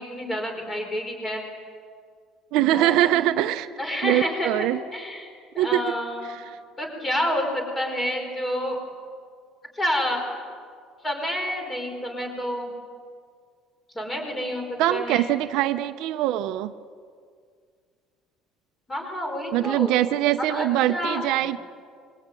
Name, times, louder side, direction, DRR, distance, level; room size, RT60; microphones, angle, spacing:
voice 1, 0.0-1.4 2.7-3.3 3.8-4.5 4.9-5.3 5.5-6.3 6.8-8.8 9.7-10.2 11.0-12.7 13.9-15.3 18.9-19.9 20.5-21.3, left 1 dB, 15° left, 3 dB, 5.0 m, -29 dB
voice 2, 2.5-3.7 4.0-4.8 5.6-5.8 6.2-6.6 14.8-16.7 19.5-21.6, right 14 dB, 70° right, 10 dB, 0.8 m, -23 dB
25.5 x 22.5 x 9.2 m, 2.1 s
cardioid pair, 145°, 0 cm